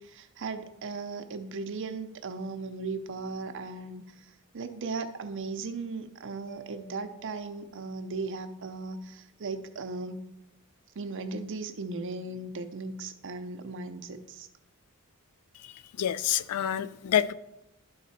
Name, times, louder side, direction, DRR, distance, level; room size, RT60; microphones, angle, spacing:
voice 1, 0.0-4.3 4.5-10.2 11.0-14.5, right 3 dB, 60° right, 0.6 m, -37 dB
Mallet percussion, 6.5-8.5, right 8 dB, 15° right, 0.8 m, -54 dB
voice 2, 16.0-17.3, left 10 dB, 85° left, 0.3 m, -27 dB
12.0 x 4.0 x 4.2 m
head